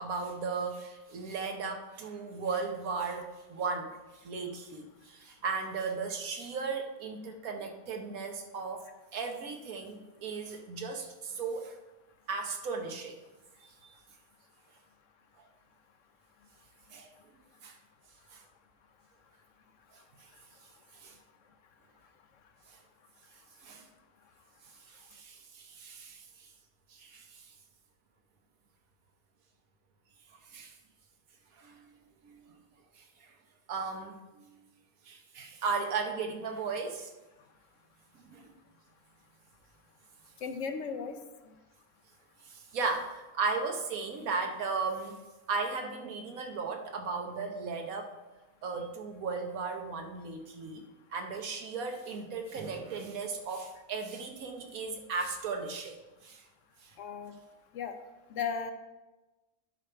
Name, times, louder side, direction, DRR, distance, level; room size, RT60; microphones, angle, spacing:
voice 1, 0.0-11.8 12.3-13.2 13.6-14.0 16.9-17.1 17.6-17.8 18.3-18.4 20.9-21.2 22.7-22.8 23.6-23.9 24.9-26.5 26.9-27.5 30.5-30.7 31.5-31.9 32.2-32.5 33.0-33.3 33.7-34.6 35.0-37.1 38.1-38.5 42.4-45.2 45.5-48.1 48.6-50.8 51.1-55.9 56.2-56.4 56.8-56.9, right 4 dB, 75° right, 4 dB, 1.4 m, -36 dB
voice 2, 40.4-41.2 57.0-57.3 57.7-58.0 58.3-58.7, left 6 dB, 65° left, 8 dB, 0.9 m, -35 dB
11.0 x 5.1 x 4.5 m, 1.1 s
omnidirectional pair, 1.5 m